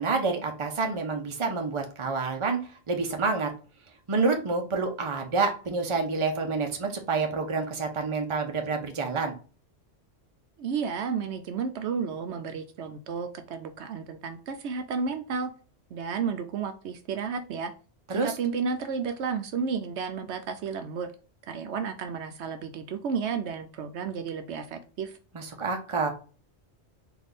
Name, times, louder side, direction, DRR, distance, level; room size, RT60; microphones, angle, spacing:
voice 1, 0.0-2.6 2.9-3.5 4.1-9.3 18.1-18.3 25.3-26.1, right 4 dB, 30° right, 3 dB, 0.8 m, -28 dB
voice 2, 10.6-15.5 15.9-17.7 18.1-21.1 21.5-25.1, right 6 dB, 75° right, 8 dB, 0.9 m, -32 dB
4.0 x 2.7 x 3.3 m, 0.36 s
omnidirectional pair, 1.2 m